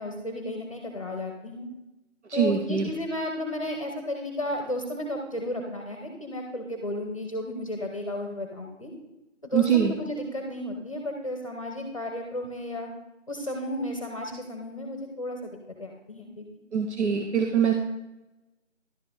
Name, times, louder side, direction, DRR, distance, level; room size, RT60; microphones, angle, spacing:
voice 1, 0.0-1.7 2.3-8.9 9.4-12.9 13.3-16.5, left 1 dB, 25° left, 2 dB, 1.0 m, -33 dB
voice 2, 2.3-2.9 9.5-9.9 16.7-17.7, right 7 dB, 65° right, 2 dB, 1.0 m, -23 dB
11.5 x 5.5 x 3.9 m, 0.96 s
figure-of-eight pair, 165°, 37 cm